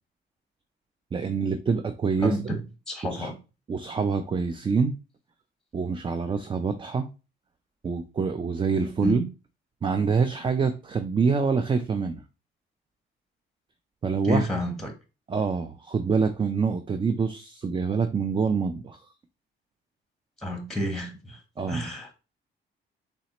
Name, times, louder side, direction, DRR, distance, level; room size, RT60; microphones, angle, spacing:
voice 1, 1.1-2.6 3.1-3.3 3.7-5.0 5.7-7.1 7.8-9.2 9.8-12.2 14.0-14.5 15.3-19.0 21.6-21.9, right 5 dB, 25° right, 9 dB, 0.4 m, -26 dB
voice 2, 2.2-2.6 2.9-3.3 9.0-9.2 14.2-14.9 20.4-21.4 21.7-22.1, left 1 dB, ahead, 5 dB, 1.0 m, -30 dB
4.0 x 3.2 x 2.9 m, 0.31 s
cardioid pair, 90°, 20 cm